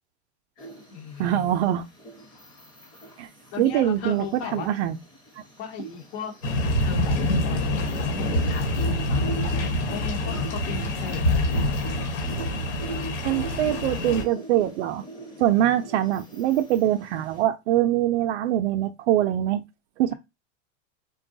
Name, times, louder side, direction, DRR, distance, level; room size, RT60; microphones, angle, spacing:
voice 1, 0.6-1.5 3.5-4.7 5.6-6.3 6.8-11.7 15.5-15.7, left 7 dB, 60° left, 1.0 m, -37 dB
sound 1, 0.6-17.4, right 2 dB, 10° left, 0.9 m, -42 dB
voice 2, 1.2-1.8 3.2-3.3 3.6-4.3 4.5-4.9 13.2-15.0 15.4-19.6 20.0-20.1, right 12 dB, 70° right, 0.5 m, -23 dB
sound 2, 6.4-14.2, left 1 dB, 75° left, 1.3 m, -26 dB
3.7 x 2.3 x 2.6 m
supercardioid pair, 130°, 35 cm